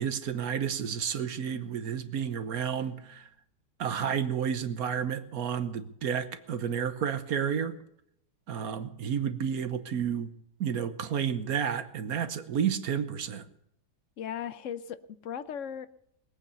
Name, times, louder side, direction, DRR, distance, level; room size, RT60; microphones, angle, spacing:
voice 1, 0.0-3.3 3.8-7.8 8.5-10.3 10.6-13.4, right 8 dB, 65° right, 11 dB, 1.3 m, -31 dB
voice 2, 14.2-15.9, left 8 dB, 60° left, 13 dB, 0.9 m, -37 dB
19.5 x 8.9 x 6.8 m, 0.76 s
omnidirectional pair, 1.8 m